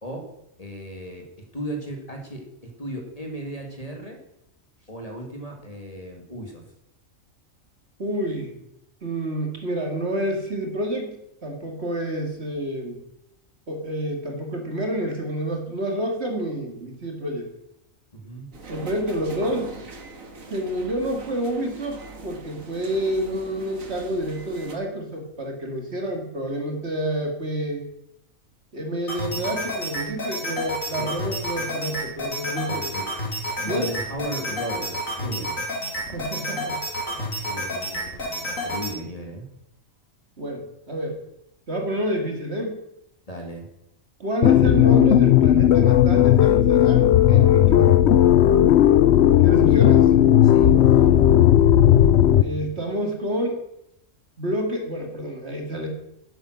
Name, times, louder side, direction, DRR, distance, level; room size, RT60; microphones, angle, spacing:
voice 1, 0.6-1.3 1.5-4.2 4.8-6.6 18.1-18.7 31.0-31.1 32.7-33.1 33.6-35.6 37.4-39.5 43.3-43.7 50.4-51.2, right 1 dB, 25° left, 2 dB, 2.3 m, -36 dB
voice 2, 8.0-8.6 9.0-13.0 13.7-17.5 18.7-19.7 20.5-27.8 28.7-32.9 33.7-33.9 36.1-36.8 40.4-41.2 41.7-42.8 44.2-48.0 49.4-50.1 52.4-53.6 54.4-55.9, right 1 dB, 50° right, 2 dB, 2.6 m, -28 dB
sound 1, 18.5-24.7, right 2 dB, 80° right, 2.1 m, -41 dB
sound 2, 29.1-38.9, equal, 85° left, 3.5 m, -30 dB
sound 3, 44.4-52.4, left 11 dB, 65° left, 0.8 m, -15 dB
11.0 x 9.1 x 6.4 m, 0.79 s
omnidirectional pair, 1.4 m